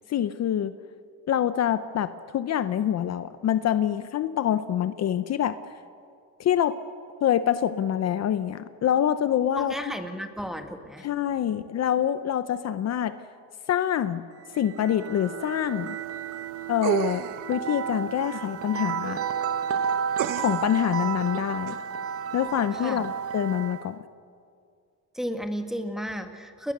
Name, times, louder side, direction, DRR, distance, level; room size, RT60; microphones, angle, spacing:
voice 1, 0.1-0.7 1.3-5.6 6.4-6.8 7.2-9.9 11.0-13.1 13.7-14.2 14.5-16.0 16.7-19.2 20.4-21.8 22.3-24.0, left 10 dB, 50° left, 12 dB, 0.9 m, -26 dB
voice 2, 9.6-11.1 22.7-23.1 25.1-26.7, equal, ahead, 6 dB, 1.9 m, -33 dB
sound 1, 14.4-23.9, right 7 dB, 45° right, 1.2 m, -32 dB
sound 2, 16.8-17.5 20.2-20.8 21.7-21.8, right 12 dB, 70° right, 1.0 m, -29 dB
30.0 x 20.5 x 6.8 m, 2.3 s
cardioid pair, 125°, 33 cm